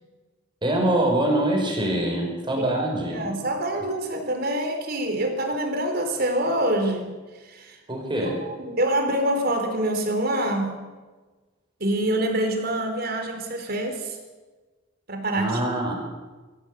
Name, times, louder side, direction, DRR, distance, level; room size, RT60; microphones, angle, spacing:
voice 1, 0.6-3.3 7.9-8.4 15.4-16.0, right 1 dB, 25° right, 1 dB, 5.6 m, -24 dB
voice 2, 3.1-7.1 7.4-7.8 8.2-10.7 11.8-14.2 15.1-15.6, right 1 dB, 50° right, 5 dB, 4.0 m, -26 dB
23.0 x 16.0 x 8.2 m, 1.3 s
head